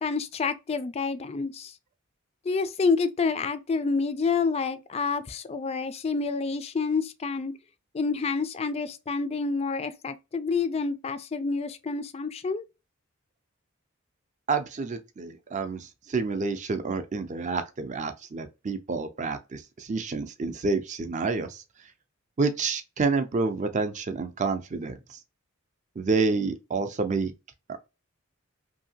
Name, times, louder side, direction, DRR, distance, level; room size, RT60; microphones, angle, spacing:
voice 1, 0.0-1.7 2.5-7.5 7.9-12.7, left 4 dB, 30° left, 0.3 m, -28 dB
voice 2, 14.5-21.6 22.4-25.2 26.0-27.3, right 4 dB, 35° right, 0.5 m, -29 dB
2.7 x 2.7 x 2.7 m
head